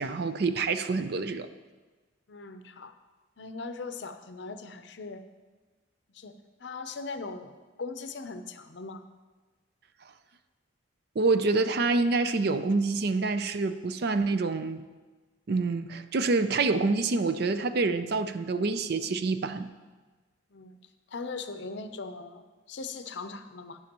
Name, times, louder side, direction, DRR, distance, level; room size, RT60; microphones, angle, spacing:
voice 1, 0.0-1.5 11.2-14.9 15.5-19.7, right 3 dB, 55° right, 11 dB, 0.5 m, -27 dB
voice 2, 2.3-2.9 3.4-5.2 6.1-6.3 6.6-9.0 20.5-20.8 21.1-23.8, left 4 dB, 60° left, 9 dB, 0.6 m, -39 dB
12.5 x 9.5 x 2.9 m, 1.3 s
head